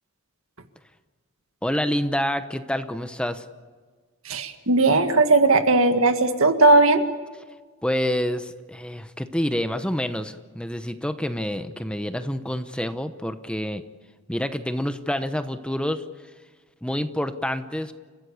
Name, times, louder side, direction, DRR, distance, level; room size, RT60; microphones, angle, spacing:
voice 1, 1.6-3.5 7.8-13.8 14.3-16.0 16.8-17.9, equal, 5° left, 9 dB, 0.9 m, -27 dB
voice 2, 4.3-7.0, right 2 dB, 80° right, 7 dB, 1.9 m, -18 dB
30.0 x 15.0 x 8.4 m, 1.4 s
head